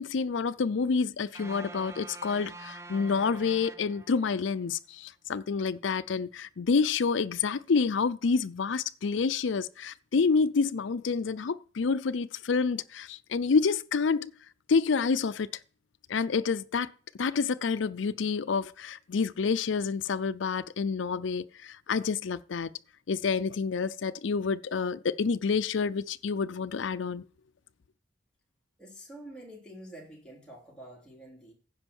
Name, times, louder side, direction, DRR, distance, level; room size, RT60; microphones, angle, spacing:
voice 1, 0.0-14.3 14.7-15.5 16.1-16.9 17.2-22.7 23.1-27.3, left 5 dB, 85° left, 0.5 m, -28 dB
sound 1, 1.4-4.6, right 3 dB, 15° right, 0.6 m, -46 dB
voice 2, 28.8-31.5, right 1 dB, 5° left, 3.4 m, -47 dB
9.9 x 5.3 x 7.0 m
head